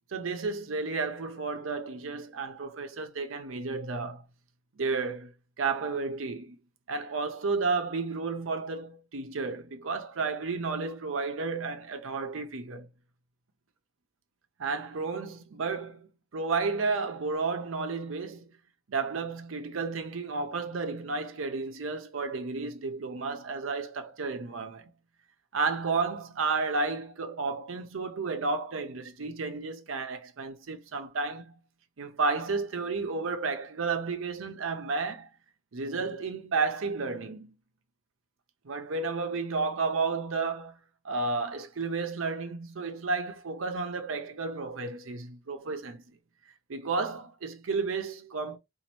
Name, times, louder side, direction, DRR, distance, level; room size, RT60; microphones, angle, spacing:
voice 1, 0.1-4.2 4.8-6.6 6.9-12.9 14.6-18.5 18.9-24.9 25.5-31.5 32.0-35.3 35.7-37.5 38.6-40.8 41.0-46.0 46.7-48.6, right 4 dB, 90° right, 0.7 m, -32 dB
4.0 x 2.5 x 3.0 m
head